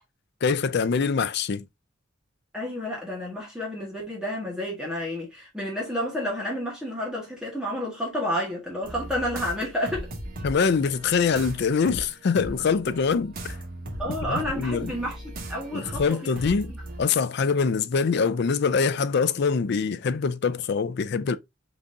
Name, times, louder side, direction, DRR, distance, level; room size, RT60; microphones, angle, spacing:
voice 1, 0.4-1.6 10.4-13.6 14.3-14.9 15.7-16.7 17.0-21.4, left 5 dB, 55° left, 0.4 m, -24 dB
voice 2, 2.5-10.1 14.0-15.2 15.5-16.2, equal, 5° right, 1.6 m, -30 dB
sound 1, 8.8-17.0, right 1 dB, 45° right, 1.4 m, -38 dB
4.8 x 3.9 x 2.6 m
head